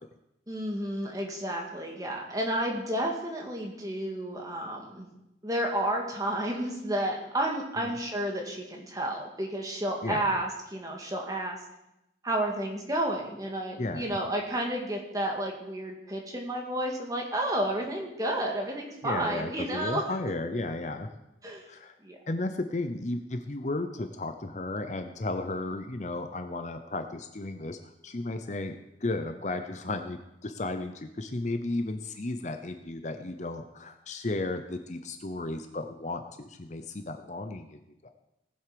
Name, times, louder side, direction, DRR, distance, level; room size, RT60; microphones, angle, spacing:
voice 1, 0.5-5.1 5.4-11.6 12.2-20.0 21.4-21.6 22.0-22.2, right 1 dB, 20° right, 0 dB, 2.0 m, -31 dB
voice 2, 10.0-10.4 13.8-14.0 19.0-21.1 21.7-21.9 22.3-27.8 28.0-28.7 29.0-38.1, left 2 dB, 40° left, 7 dB, 0.7 m, -34 dB
18.5 x 7.9 x 5.2 m, 0.90 s
head